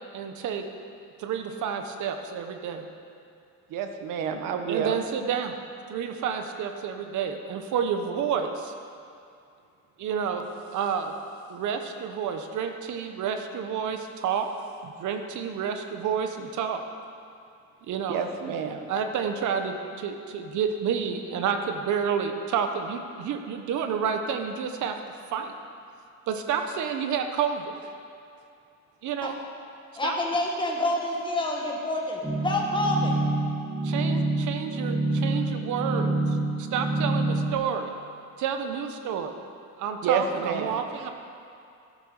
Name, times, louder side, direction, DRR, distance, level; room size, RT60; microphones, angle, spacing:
voice 1, 0.1-0.6 1.2-2.9 4.7-5.5 5.9-8.7 10.0-11.1 11.5-14.5 14.8-16.8 17.9-18.2 18.9-25.0 25.3-25.5 26.3-27.9 29.0-29.4 30.0-30.2 33.8-37.9 38.4-39.3 39.8-41.1, right 7 dB, 65° right, 6 dB, 1.3 m, -30 dB
voice 2, 3.7-5.0 18.1-18.9 40.0-40.8, right 6 dB, 85° right, 6 dB, 1.4 m, -29 dB
voice 3, 30.0-33.2, left 1 dB, 15° left, -2 dB, 2.0 m, -27 dB
sound 1, 32.2-37.5, right 2 dB, 10° right, 4.1 m, -27 dB
13.5 x 11.0 x 6.6 m, 2.5 s
cardioid pair, 160°, 32 cm